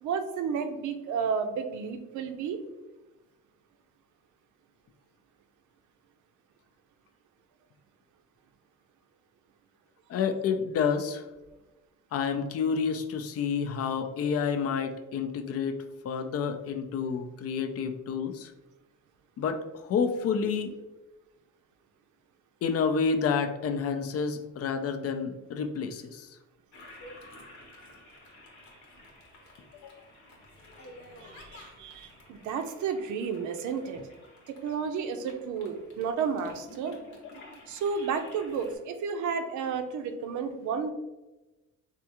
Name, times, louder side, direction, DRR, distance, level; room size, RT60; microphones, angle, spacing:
voice 1, 0.0-2.6 31.2-34.0 34.5-37.0 37.7-40.9, right 6 dB, 75° right, 7 dB, 0.5 m, -32 dB
voice 2, 10.1-11.3 12.1-18.5 19.4-20.7 22.6-26.3 29.8-29.9, left 6 dB, 50° left, 7 dB, 0.5 m, -29 dB
Toilet flush, 26.7-38.8, left 1 dB, 65° left, 1.0 m, -51 dB
3.4 x 2.4 x 2.8 m, 1.1 s
cardioid pair, 90°, 30 cm